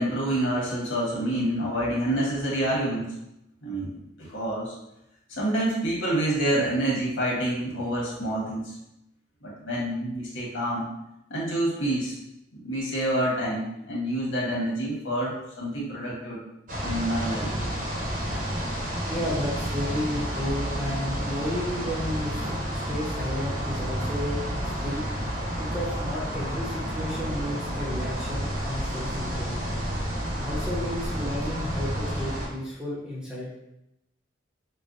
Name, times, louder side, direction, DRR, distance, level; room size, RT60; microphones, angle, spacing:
voice 1, 0.0-3.1 3.6-4.7 5.3-8.7 9.4-10.9 11.3-12.2 12.5-16.4 16.8-17.5, right 1 dB, 85° left, -5 dB, 1.3 m, -27 dB
sound 1, 16.7-32.5, equal, 45° right, 0.8 m, -30 dB
voice 2, 19.1-25.0 25.6-29.7 30.4-33.5, left 1 dB, 5° right, -6 dB, 0.8 m, -33 dB
5.3 x 2.2 x 2.6 m, 0.85 s
head